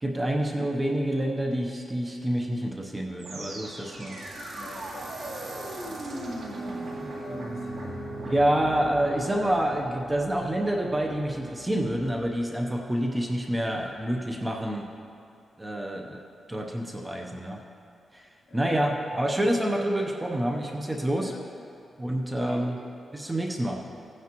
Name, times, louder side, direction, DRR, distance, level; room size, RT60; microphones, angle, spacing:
voice 1, 0.0-4.2 8.3-14.9 15.6-16.2 16.5-17.6 18.1-21.3 22.0-22.8 23.1-23.8, right 1 dB, 15° right, 1 dB, 0.7 m, -27 dB
sound 1, 3.2-12.3, right 1 dB, 70° right, 2.1 m, -38 dB
voice 2, 4.5-8.0 15.8-16.1 18.5-18.9 21.2-21.4 22.4-22.7, left 2 dB, 50° left, -4 dB, 2.8 m, -47 dB
16.5 x 9.5 x 3.0 m, 2.5 s
wide cardioid pair, 120°, 0 cm